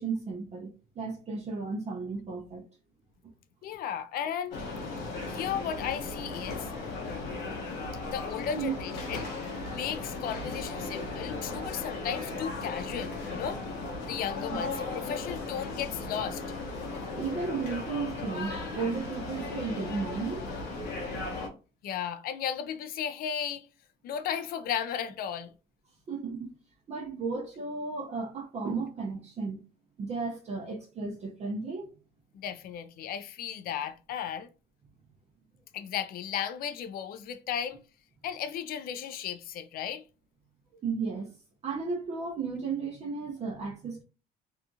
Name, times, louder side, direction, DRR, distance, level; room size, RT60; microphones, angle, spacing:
voice 1, 0.0-2.7 8.5-8.8 14.5-14.6 17.2-20.5 26.1-26.5 26.9-29.6 30.0-31.9 40.8-41.4 41.6-44.0, right 4 dB, 40° right, 0.6 m, -34 dB
voice 2, 3.6-4.6 5.3-6.7 8.0-9.3 9.7-13.6 14.1-16.4 21.8-23.7 24.0-25.5 32.3-34.5 35.7-37.8 38.2-40.0, left 8 dB, 60° left, 0.4 m, -35 dB
sound 1, 4.5-21.5, left 3 dB, 85° left, 0.9 m, -36 dB
2.7 x 2.3 x 2.6 m
cardioid pair, 110°, 17 cm